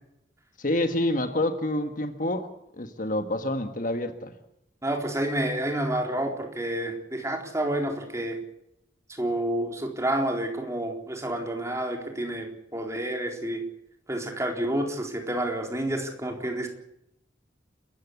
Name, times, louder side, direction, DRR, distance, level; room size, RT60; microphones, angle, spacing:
voice 1, 0.6-2.5 2.7-4.3, left 1 dB, 45° left, 1.5 m, -27 dB
voice 2, 4.8-8.4 9.1-13.6 14.1-16.7, right 1 dB, 15° right, 4.0 m, -29 dB
30.0 x 14.5 x 8.3 m
head